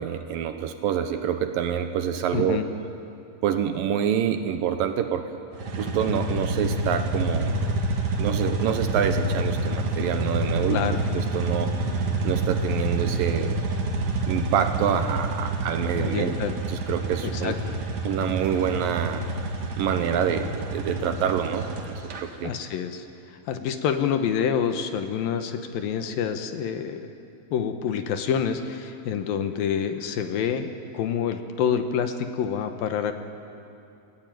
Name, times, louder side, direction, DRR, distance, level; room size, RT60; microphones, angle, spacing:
voice 1, 0.0-2.6 3.4-5.3 5.8-7.5 8.2-10.8 11.1-11.8 12.2-13.6 14.3-16.3 16.7-17.6 18.0-19.3 19.8-22.5, right 8 dB, 70° right, 8 dB, 2.4 m, -26 dB
voice 2, 2.3-2.7 10.7-11.0 16.0-16.6 17.2-17.6 22.4-27.1 27.5-33.1, left 8 dB, 70° left, 7 dB, 2.7 m, -27 dB
sound 1, 5.5-22.2, right 2 dB, 50° right, 2.2 m, -28 dB
29.0 x 16.0 x 9.2 m, 2.7 s
omnidirectional pair, 4.5 m